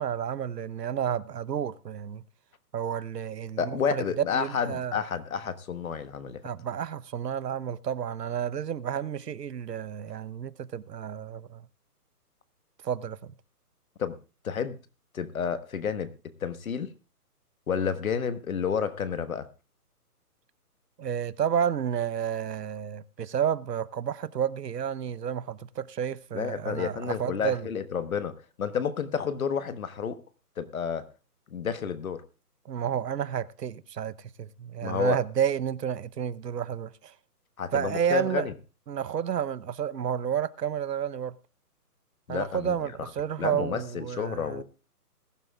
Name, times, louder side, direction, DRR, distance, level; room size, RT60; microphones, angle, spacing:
voice 1, 0.0-2.2 2.7-4.0 4.3-5.0 6.4-11.7 12.8-13.3 21.0-27.7 32.7-37.1 37.7-38.5 38.9-41.4 42.3-44.6, right 9 dB, 90° right, 0.9 m, -31 dB
voice 2, 3.6-6.4 14.0-14.2 14.4-14.8 15.1-16.1 16.4-16.9 17.7-19.5 26.3-30.2 30.6-31.0 31.5-32.2 34.8-35.2 37.6-38.5 42.3-42.8 43.4-44.6, left 7 dB, 60° left, 1.3 m, -30 dB
20.5 x 11.5 x 2.3 m
hypercardioid pair, 170°, 47 cm